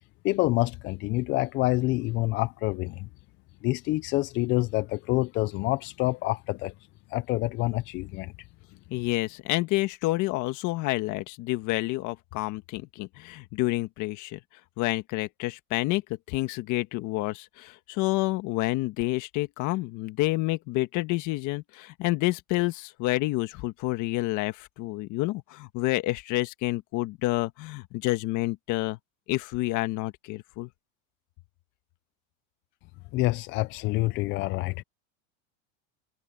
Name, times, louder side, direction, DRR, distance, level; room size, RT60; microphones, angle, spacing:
voice 1, 0.2-3.1 3.6-6.7 7.1-8.3 33.1-34.8, left 20 dB, 30° left, 0.4 m, -27 dB
voice 2, 8.9-14.4 14.8-29.0 29.3-30.7, left 20 dB, 50° left, 1.6 m, -29 dB
supercardioid pair, 135°, 39 cm